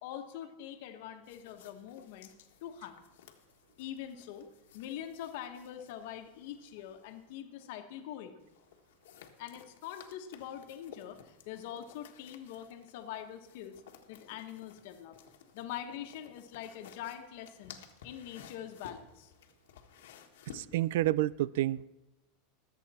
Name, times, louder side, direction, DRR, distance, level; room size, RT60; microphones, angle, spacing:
voice 1, 0.0-2.3 2.6-3.0 3.8-4.4 4.7-8.4 9.4-13.8 14.1-15.2 15.5-17.8 18.0-19.3, left 10 dB, 65° left, 6 dB, 1.3 m, -44 dB
sound 1, 1.2-7.4 8.4-21.1, left 8 dB, 85° left, 1.4 m, -56 dB
voice 2, 20.5-21.8, right 15 dB, 75° right, 22 dB, 0.3 m, -29 dB
22.5 x 8.2 x 4.3 m, 1.0 s
supercardioid pair, 150°, 0 cm